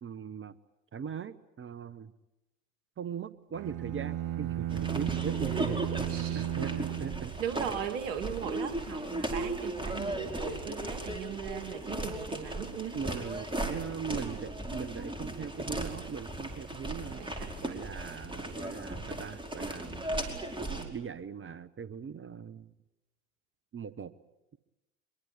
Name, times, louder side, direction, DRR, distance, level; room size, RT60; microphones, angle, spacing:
voice 1, 0.0-0.5 0.9-2.1 3.0-7.3 12.9-20.2 20.7-22.7 23.7-24.1, right 7 dB, 30° right, 16 dB, 1.1 m, -40 dB
sound 1, 3.5-7.9, right 13 dB, 50° right, 1.3 m, -35 dB
sound 2, 4.7-20.9, right 1 dB, 10° right, 5.0 m, -37 dB
voice 2, 6.1-7.0 7.4-13.0 17.2-17.6, right 8 dB, 70° right, 10 dB, 2.3 m, -38 dB
24.0 x 23.0 x 8.4 m, 0.95 s
figure-of-eight pair, 60°, 39 cm